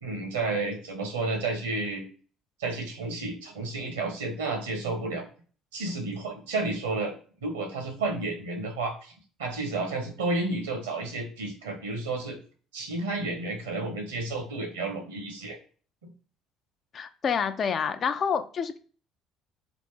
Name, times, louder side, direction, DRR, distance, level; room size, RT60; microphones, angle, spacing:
voice 1, 0.0-2.0 2.6-5.2 5.7-7.1 7.4-9.1 9.4-12.4 12.7-15.6 16.0-16.1, right 3 dB, 75° right, 4 dB, 1.1 m, -31 dB
voice 2, 16.9-18.8, left 6 dB, 45° left, 9 dB, 0.5 m, -28 dB
4.0 x 2.5 x 3.6 m, 0.41 s
figure-of-eight pair, 55°, 0 cm